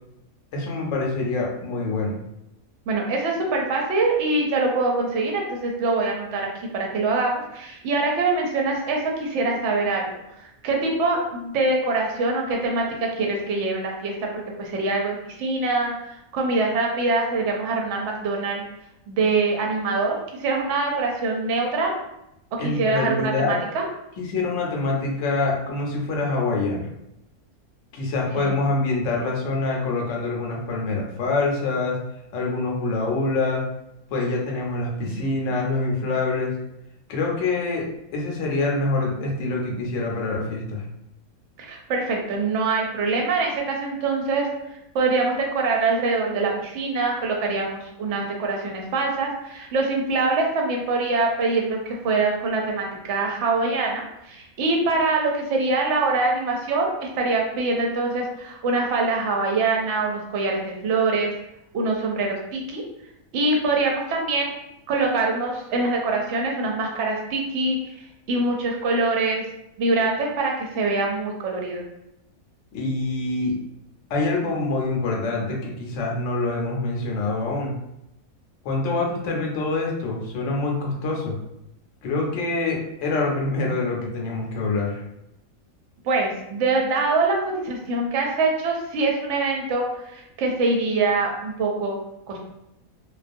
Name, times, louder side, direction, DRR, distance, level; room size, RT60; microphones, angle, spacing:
voice 1, 0.5-2.2 22.6-23.6 24.2-26.9 27.9-32.0 32.3-33.6 34.1-36.5 37.1-37.9 38.1-40.8 72.7-73.5 74.1-77.7 78.6-81.3 82.0-85.0, left 3 dB, 65° left, -1 dB, 0.9 m, -25 dB
voice 2, 2.9-6.5 6.7-10.1 10.4-15.9 16.3-18.6 19.1-21.9 22.5-23.8 28.4-28.5 35.0-35.2 41.6-44.5 44.9-61.3 61.7-62.8 63.3-64.5 64.9-67.8 68.3-69.4 69.8-71.8 86.0-89.9 90.1-91.9 92.3-92.4, right 3 dB, 65° right, 0 dB, 0.8 m, -24 dB
2.3 x 2.3 x 2.5 m, 0.85 s
omnidirectional pair, 1.5 m